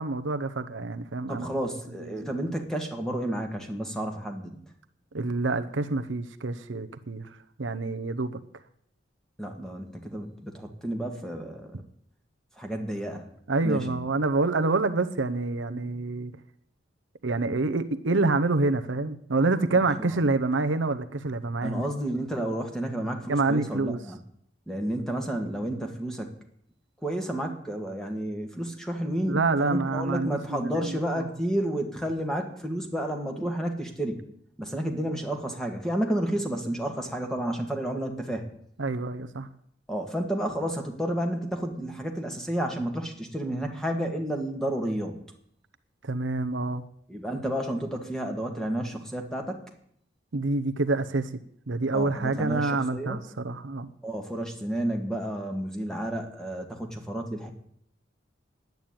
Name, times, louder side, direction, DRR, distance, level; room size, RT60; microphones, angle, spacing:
voice 1, 0.0-1.6 2.0-2.2 5.1-8.4 13.5-16.3 17.2-21.8 23.3-24.0 29.3-31.3 38.8-39.5 46.0-46.8 50.3-51.3 51.7-53.9, right 3 dB, 80° right, 0.8 m, -27 dB
voice 2, 1.3-4.6 9.4-11.8 12.6-13.3 13.6-13.8 20.0-20.1 21.6-24.2 24.7-26.3 27.0-34.2 34.6-38.4 39.9-45.2 47.1-49.6 51.9-53.2 54.0-57.5, right 1 dB, 5° left, 1.9 m, -31 dB
10.5 x 9.3 x 8.7 m
head